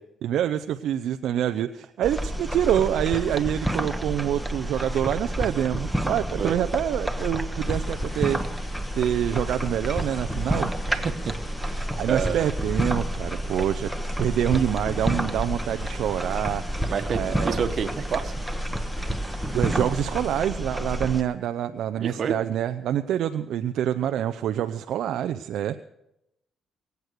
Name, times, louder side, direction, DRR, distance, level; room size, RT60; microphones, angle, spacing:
voice 1, 0.2-8.4 8.9-10.7 12.0-16.6 17.1-17.6 19.5-25.8, right 10 dB, 75° right, 8 dB, 0.5 m, -26 dB
sound 1, 2.0-21.2, equal, ahead, 1.3 m, -29 dB
sound 2, 7.6-20.4, left 2 dB, 45° left, 3.2 m, -49 dB
voice 2, 10.9-11.3 11.6-11.8 12.1-12.5 16.9-18.3 22.0-22.4, right 7 dB, 55° right, 9 dB, 1.3 m, -29 dB
22.5 x 8.2 x 6.6 m, 0.84 s
cardioid pair, 90°, 0 cm